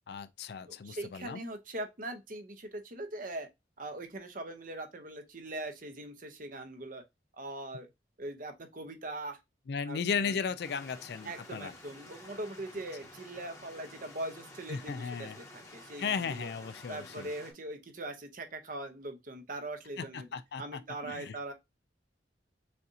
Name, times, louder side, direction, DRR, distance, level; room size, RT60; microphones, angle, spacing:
voice 1, 0.1-1.4 9.7-11.7 14.7-15.4 16.0-17.3 20.0-21.4, left 6 dB, 60° left, 0.4 m, -36 dB
voice 2, 0.7-3.5 3.8-7.0 7.4-7.9 8.2-9.4 9.9-10.4 11.2-16.5 16.9-20.3 20.6-21.5, right 2 dB, 50° right, 0.8 m, -41 dB
sound 1, 10.6-17.5, left 2 dB, 15° left, 1.2 m, -51 dB
6.6 x 2.5 x 2.7 m
head